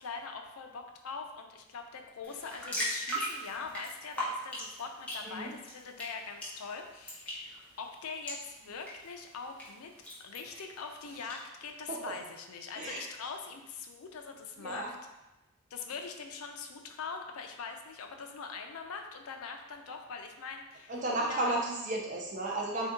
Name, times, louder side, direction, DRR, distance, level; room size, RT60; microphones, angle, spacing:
voice 1, 0.0-9.9 10.2-15.0 15.7-21.0 21.3-21.5, left 5 dB, 80° left, 4 dB, 0.5 m, -42 dB
sound 1, 2.2-11.4, equal, 5° left, 0.7 m, -41 dB
voice 2, 14.6-14.9 20.9-22.9, right 2 dB, 35° right, -2 dB, 0.4 m, -33 dB
3.6 x 2.7 x 3.5 m, 1.0 s
head